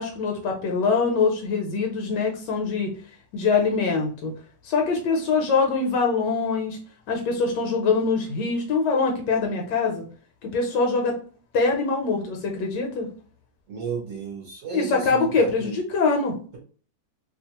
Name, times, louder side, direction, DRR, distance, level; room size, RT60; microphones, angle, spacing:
voice 1, 0.0-2.9 3.3-4.3 4.6-6.8 7.1-10.0 10.4-11.2 11.5-13.1 14.7-16.3, left 4 dB, 75° left, 2 dB, 1.2 m, -23 dB
voice 2, 13.7-15.1 15.4-15.8, right 5 dB, 60° right, -2 dB, 0.9 m, -33 dB
2.9 x 2.3 x 2.8 m, 0.42 s
omnidirectional pair, 2.0 m